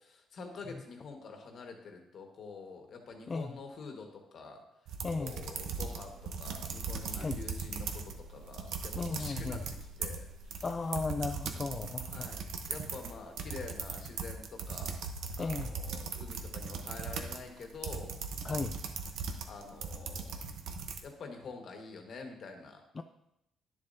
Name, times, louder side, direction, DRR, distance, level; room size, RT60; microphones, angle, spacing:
voice 1, 0.0-9.6 10.0-10.6 12.1-12.4 12.7-15.0 15.3-18.5 19.4-20.3 21.0-22.8, left 4 dB, 50° left, 3 dB, 1.4 m, -47 dB
sound 1, 4.9-8.2 8.5-21.0, right 5 dB, 75° right, 0.8 m, -39 dB
sound 2, 5.4-10.4, right 4 dB, 50° right, 3.0 m, -53 dB
voice 2, 8.9-9.6 10.6-12.3 15.4-15.7 18.4-18.8 23.0-23.1, left 4 dB, 30° left, 7 dB, 0.3 m, -35 dB
10.5 x 7.3 x 2.7 m, 0.83 s
cardioid pair, 120°, 0 cm